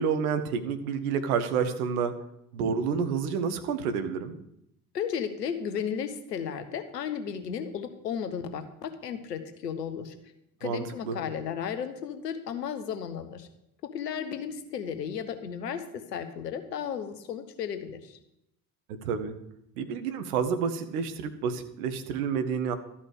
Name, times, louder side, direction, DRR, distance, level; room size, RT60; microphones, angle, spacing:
voice 1, 0.0-2.1 2.5-4.4 10.6-11.2 19.0-19.3 19.8-22.8, right 6 dB, 65° right, 9 dB, 1.0 m, -29 dB
voice 2, 4.9-10.1 10.6-13.5 13.9-18.2, left 7 dB, 75° left, 9 dB, 1.0 m, -34 dB
12.5 x 5.6 x 6.5 m, 0.80 s
figure-of-eight pair, 55°, 48 cm